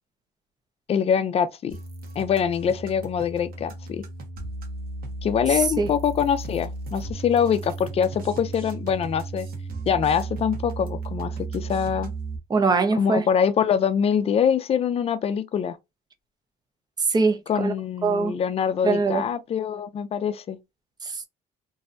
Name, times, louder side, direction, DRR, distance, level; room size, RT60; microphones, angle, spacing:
voice 1, 0.9-1.8 2.2-4.0 5.2-9.5 9.9-12.1 12.9-15.8 17.5-20.6, left 8 dB, 35° left, 0.4 m, -24 dB
sound 1, 1.7-12.4, right 3 dB, 60° right, 0.9 m, -35 dB
voice 2, 5.5-5.9 12.5-13.2 17.1-17.7 18.0-18.3 18.8-19.2 21.0-21.3, right 4 dB, 25° right, 0.5 m, -22 dB
2.6 x 2.1 x 2.4 m
cardioid pair, 110°, 17 cm